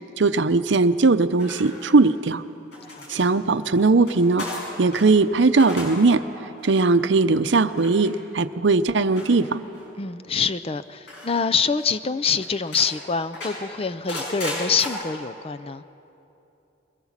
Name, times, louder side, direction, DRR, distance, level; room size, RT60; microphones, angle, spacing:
voice 1, 0.2-2.4 3.1-4.5 4.8-6.2 6.6-9.6, right 3 dB, 70° right, 12 dB, 0.7 m, -19 dB
sound 1, 1.4-2.3 2.7-5.1 5.4-6.1 6.3-6.7 7.7-8.1 9.2-9.9 11.1-11.4 11.8-11.9 12.2-12.9 13.3-14.9, left 1 dB, 60° left, 7.3 m, -35 dB
voice 2, 2.9-3.2 10.0-15.8, left 5 dB, 30° left, 14 dB, 0.5 m, -25 dB
23.0 x 20.5 x 7.3 m, 2.9 s
head